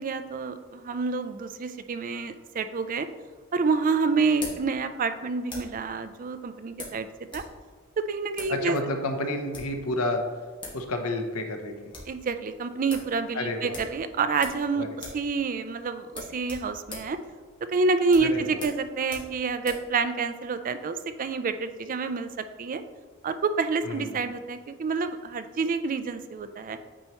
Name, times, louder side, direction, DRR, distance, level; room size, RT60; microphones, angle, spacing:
voice 1, 0.0-3.1 3.5-7.1 7.3-7.4 8.0-8.8 12.1-14.8 15.1-17.2 17.7-22.8 23.2-26.8, right 4 dB, 40° right, 10 dB, 0.4 m, -28 dB
sound 1, 2.9-5.9 6.8-7.5 7.8-7.9 8.3-8.6 9.3-9.8 10.3-10.4 10.6-10.8 11.1-11.2 11.6-12.2 12.5-12.6 12.9-13.1 13.7-14.7 14.9-15.3 15.5-15.7 16.1-19.9, left 2 dB, 20° left, 1.6 m, -42 dB
voice 2, 8.5-10.2 10.7-11.7 13.3-13.8 14.8-14.9 18.2-18.6 23.8-24.2, left 2 dB, 80° left, 5 dB, 0.8 m, -30 dB
8.9 x 4.4 x 3.0 m, 1.5 s
head